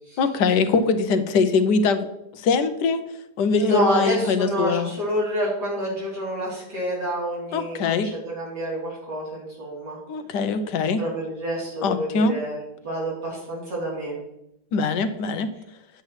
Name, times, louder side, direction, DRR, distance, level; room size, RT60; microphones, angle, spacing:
voice 1, 0.2-2.1 2.3-3.0 3.4-4.9 7.5-8.1 10.1-11.0 11.8-12.3 14.7-15.5, left 4 dB, 90° left, 10 dB, 1.4 m, -22 dB
voice 2, 3.6-10.0 11.0-12.6 12.8-14.2, equal, 80° right, -6 dB, 4.2 m, -28 dB
9.3 x 8.1 x 3.2 m, 0.86 s
omnidirectional pair, 1.8 m